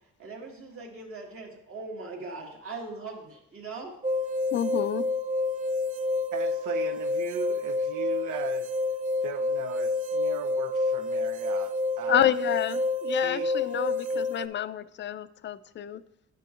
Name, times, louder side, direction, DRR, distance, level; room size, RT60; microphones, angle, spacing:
voice 1, 0.2-3.9, right 3 dB, 45° right, 1.8 m, -40 dB
sound 1, 4.0-14.5, left 2 dB, 30° right, 0.4 m, -28 dB
voice 2, 4.5-5.1 12.1-16.0, left 10 dB, 40° left, 0.4 m, -29 dB
voice 3, 6.3-8.7 9.2-12.3 13.2-13.5 14.1-14.2, right 8 dB, 80° right, 0.6 m, -39 dB
10.5 x 5.7 x 2.5 m
cardioid pair, 90°, 30 cm